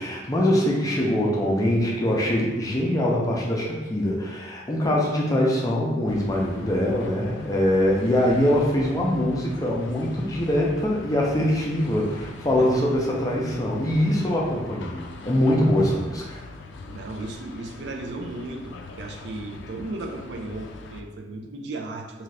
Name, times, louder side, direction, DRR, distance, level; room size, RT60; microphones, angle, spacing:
voice 1, 0.0-16.4, left 1 dB, 20° left, -3 dB, 0.4 m, -23 dB
sound 1, 6.1-21.0, left 3 dB, 85° left, 0.3 m, -41 dB
voice 2, 16.9-22.2, right 2 dB, 70° right, 3 dB, 0.3 m, -35 dB
2.6 x 2.4 x 3.2 m, 1.1 s
head